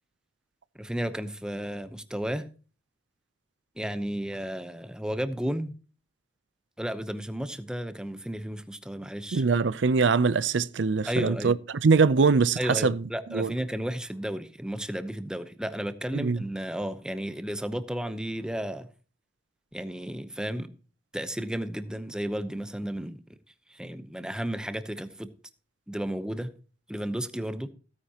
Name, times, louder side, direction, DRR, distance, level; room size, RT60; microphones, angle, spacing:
voice 1, 0.8-2.5 3.8-5.7 6.8-9.4 11.1-11.6 12.6-18.9 19.7-20.7 21.1-23.2 23.7-25.3 25.9-26.5 26.9-27.7, equal, 5° right, 0.8 m, -33 dB
voice 2, 9.3-11.6 11.8-13.0 13.3-13.5 16.1-16.4, right 4 dB, 80° right, 0.6 m, -23 dB
16.0 x 9.5 x 2.9 m
head